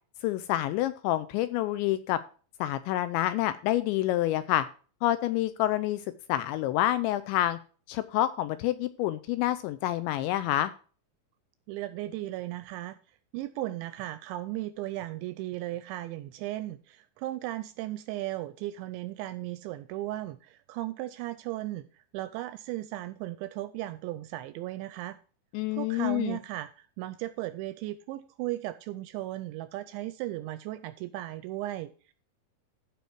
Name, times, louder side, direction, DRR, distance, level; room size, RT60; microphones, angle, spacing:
voice 1, 0.2-2.2 2.6-4.6 5.0-6.0 6.3-7.6 7.9-10.7 25.5-26.4, left 14 dB, 80° left, 13 dB, 2.7 m, -28 dB
voice 2, 11.7-13.0 13.3-21.8 22.1-25.2 25.7-32.1, right 15 dB, 85° right, 13 dB, 2.7 m, -36 dB
14.5 x 5.4 x 4.5 m, 0.38 s
omnidirectional pair, 5.6 m